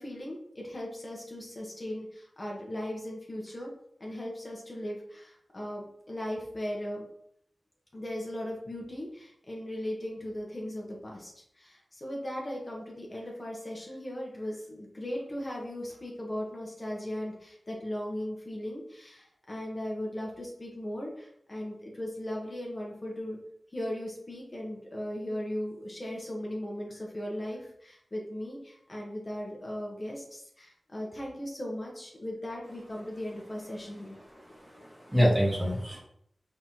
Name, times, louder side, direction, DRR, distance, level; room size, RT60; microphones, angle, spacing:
voice 1, 0.0-3.7 4.0-7.0 7.9-11.3 11.6-23.4 23.7-34.2, left 1 dB, 35° left, -2 dB, 1.1 m, -38 dB
voice 2, 34.7-36.0, equal, 10° right, -3 dB, 1.5 m, -26 dB
4.2 x 3.8 x 3.0 m, 0.71 s
cardioid pair, 45°, 0 cm